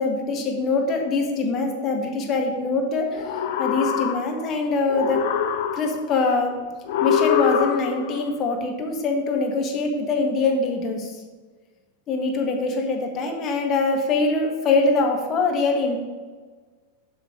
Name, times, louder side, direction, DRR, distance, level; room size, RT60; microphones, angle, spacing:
voice 1, 0.0-3.2 3.6-5.2 5.7-6.5 7.0-11.2 12.1-16.0, left 3 dB, 30° left, 2 dB, 1.5 m, -23 dB
sound 1, 3.1-4.6 4.9-6.2 6.9-8.2, left 9 dB, 50° left, 0.7 m, -24 dB
8.3 x 5.5 x 5.2 m, 1.4 s
figure-of-eight pair, 90°, 0 cm